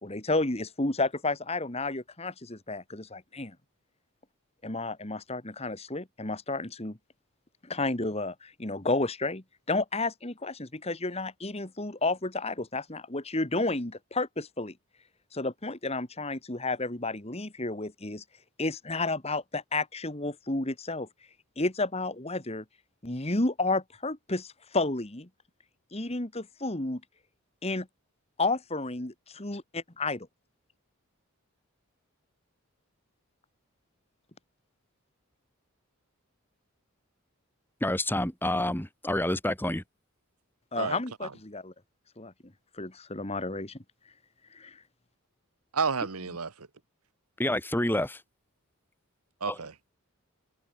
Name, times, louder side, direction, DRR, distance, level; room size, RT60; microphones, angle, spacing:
voice 1, 0.0-3.6 4.6-7.0 7.6-14.7 15.3-18.2 18.6-21.1 21.6-22.6 23.0-25.3 25.9-27.0 27.6-27.9 28.4-29.1 29.4-30.3 40.7-41.7 42.2-42.3 42.7-43.8 44.5-44.8, left 2 dB, 30° left, 1.9 m, -31 dB
voice 2, 37.8-39.8 47.4-48.2 49.5-49.6, left 1 dB, 10° left, 2.3 m, -28 dB
voice 3, 40.8-41.3 45.7-46.7 49.4-49.7, right 5 dB, 90° right, 1.4 m, -31 dB
head